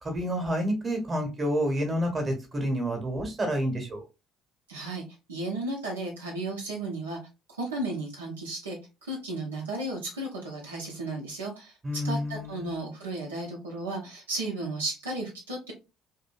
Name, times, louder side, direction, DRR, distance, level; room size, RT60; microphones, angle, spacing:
voice 1, 0.0-4.0 11.8-12.9, equal, 30° right, 4 dB, 1.1 m, -29 dB
voice 2, 4.7-7.2 7.5-11.7 12.0-15.7, right 2 dB, 80° right, -3 dB, 0.7 m, -34 dB
2.7 x 2.6 x 2.4 m, 0.27 s
figure-of-eight pair, 50°, 0 cm